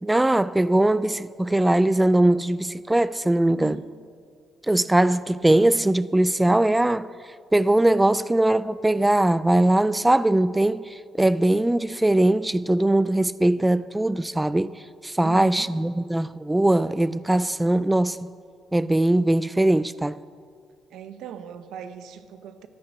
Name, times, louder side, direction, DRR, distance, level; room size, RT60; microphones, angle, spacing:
voice 1, 0.0-3.8 4.7-7.1 7.5-14.7 15.0-18.2 18.7-20.2, right 1 dB, 10° right, 0.4 m, -21 dB
voice 2, 3.5-3.9 15.2-15.7 20.9-22.7, right 8 dB, 85° right, 1.0 m, -39 dB
13.0 x 11.5 x 7.9 m
cardioid pair, 90°, 0 cm